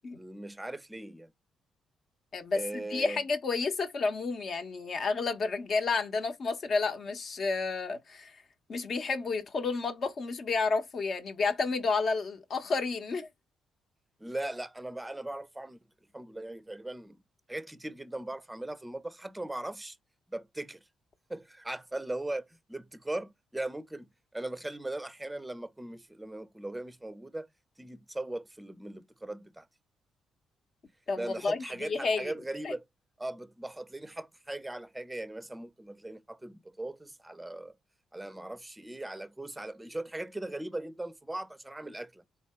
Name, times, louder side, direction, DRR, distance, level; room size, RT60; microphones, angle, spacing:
voice 1, 0.1-1.3 2.5-3.2 14.2-15.8 16.1-17.2 17.5-20.0 20.3-20.8 21.3-27.5 27.8-29.7 31.2-32.8 33.2-37.7 38.1-42.2, right 1 dB, 10° right, 0.6 m, -39 dB
voice 2, 2.3-8.4 8.7-13.3 31.1-32.3 32.6-32.7, left 4 dB, 50° left, 1.0 m, -31 dB
3.8 x 2.7 x 4.4 m
cardioid pair, 90°, 0 cm